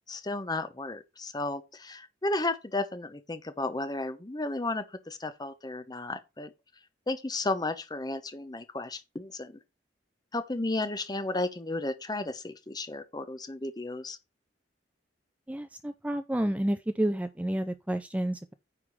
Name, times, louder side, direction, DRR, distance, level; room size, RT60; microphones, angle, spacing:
voice 1, 0.1-6.5 7.1-9.6 10.3-14.2, left 2 dB, 25° left, 0.9 m, -33 dB
voice 2, 15.5-18.5, right 1 dB, 10° right, 0.5 m, -30 dB
9.6 x 3.6 x 6.1 m
head